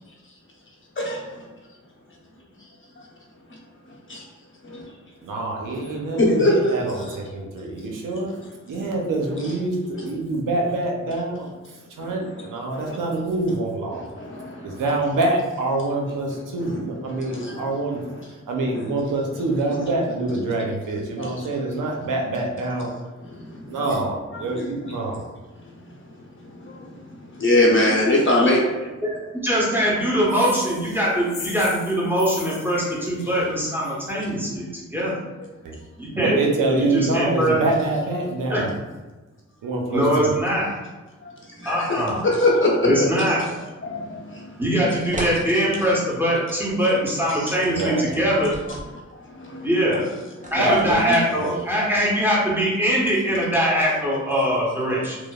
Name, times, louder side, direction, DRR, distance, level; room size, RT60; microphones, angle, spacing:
voice 1, 5.2-8.3 8.7-14.0 14.6-18.0 18.5-22.9 23.7-25.2 35.6-35.7 36.1-38.7 39.6-40.3 47.6-48.2 50.6-51.0 51.3-51.6, right 2 dB, 80° right, 0 dB, 0.6 m, -25 dB
voice 2, 6.2-6.5 12.0-12.1 14.2-14.8 17.4-17.5 21.2-21.3 26.6-26.7 27.4-28.7 41.2-41.3 41.6-42.9 43.2-43.3 43.8-44.4 47.3-47.4 48.3-48.4 49.4-49.7, left 2 dB, 40° left, -3 dB, 0.8 m, -21 dB
voice 3, 29.0-35.1 36.0-36.3 36.8-37.5 38.5-38.6 39.9-40.7 41.6-42.2 42.8-43.4 44.6-48.5 49.6-50.1 50.5-55.2, equal, 5° right, -6 dB, 1.1 m, -22 dB
sound 1, 30.3-34.1, left 5 dB, 85° left, 0.5 m, -38 dB
sound 2, 45.1-45.4 48.3-48.9 50.4-51.2, right 1 dB, 25° right, 0.6 m, -33 dB
2.9 x 2.0 x 2.2 m, 1.2 s
cardioid pair, 45°, 31 cm